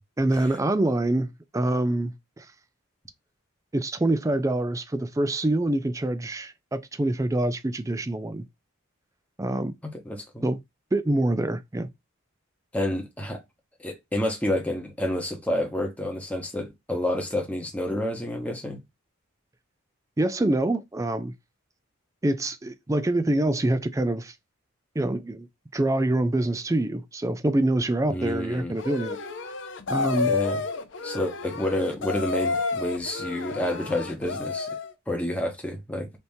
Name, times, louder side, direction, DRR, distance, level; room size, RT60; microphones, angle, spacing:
voice 1, 0.2-2.5 3.7-8.5 9.4-9.7 10.4-10.6 10.9-11.9 20.2-21.3 22.2-24.3 25.0-25.5 25.7-29.2 29.9-30.4, right 1 dB, 15° right, 0.3 m, -25 dB
voice 2, 10.0-10.5 12.7-13.4 13.8-18.8 28.1-28.8 30.2-30.6 31.0-34.7 35.1-36.1, left 1 dB, 5° left, 0.8 m, -29 dB
sound 1, 28.8-34.9, left 4 dB, 55° left, 0.6 m, -30 dB
3.4 x 2.7 x 2.6 m
head